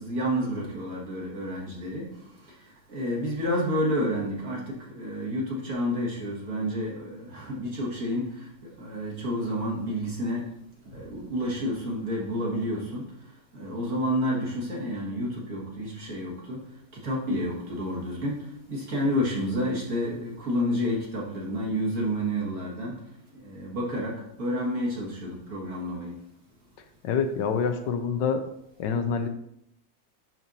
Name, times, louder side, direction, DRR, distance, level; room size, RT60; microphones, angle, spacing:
voice 1, 0.0-2.1 2.9-10.5 10.9-13.1 13.5-16.6 16.9-23.0 23.3-26.1, equal, 45° right, -4 dB, 2.1 m, -30 dB
voice 2, 27.0-28.4 28.8-29.3, left 6 dB, 75° left, 8 dB, 1.2 m, -26 dB
10.5 x 4.3 x 2.7 m, 0.75 s
omnidirectional pair, 2.1 m